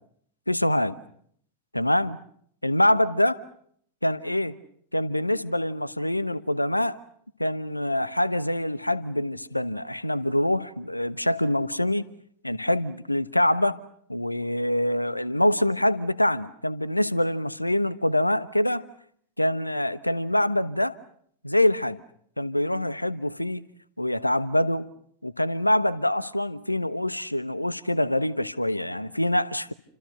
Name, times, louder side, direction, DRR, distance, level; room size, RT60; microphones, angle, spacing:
voice 1, 0.5-0.9 1.7-2.2 2.6-3.4 4.0-4.6 4.9-7.0 7.4-12.1 12.4-13.8 14.1-18.8 19.4-21.0 21.4-22.0 22.4-23.6 24.0-24.9 25.2-29.7, left 1 dB, 85° left, 1.0 m, -25 dB
29.0 x 26.0 x 6.6 m
figure-of-eight pair, 90°, 0 cm